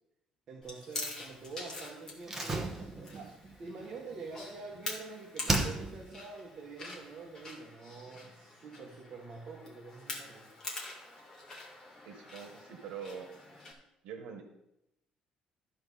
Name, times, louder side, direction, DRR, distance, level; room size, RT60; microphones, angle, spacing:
voice 1, 0.5-2.6 3.0-10.5, right 4 dB, 35° right, -1 dB, 1.3 m, -46 dB
Chewing mastication, 0.6-13.7, left 2 dB, 25° left, 1.9 m, -45 dB
Slam, 2.2-5.0 5.4-6.2 6.5-6.6, right 2 dB, 15° right, 1.0 m, -35 dB
voice 2, 12.0-13.3 14.0-14.4, right 7 dB, 80° right, 4 dB, 1.2 m, -44 dB
13.0 x 4.7 x 5.5 m, 0.87 s
cardioid pair, 170°, 2 cm